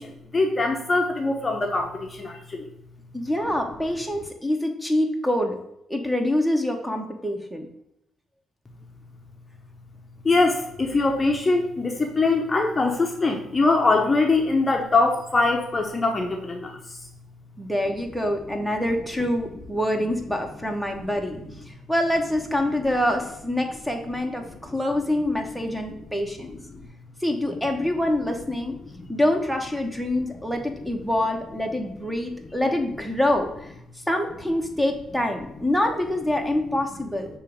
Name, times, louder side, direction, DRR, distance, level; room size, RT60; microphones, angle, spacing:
voice 1, 0.0-2.7 10.2-17.0 25.9-26.0 26.4-26.5 29.0-29.1, left 3 dB, 25° left, 2 dB, 0.8 m, -23 dB
voice 2, 3.1-5.6 5.9-7.7 17.6-26.5 27.2-28.7 29.1-33.7 34.1-37.3, left 1 dB, ahead, 4 dB, 1.0 m, -25 dB
6.4 x 3.1 x 5.1 m, 0.80 s
cardioid pair, 90°, 0 cm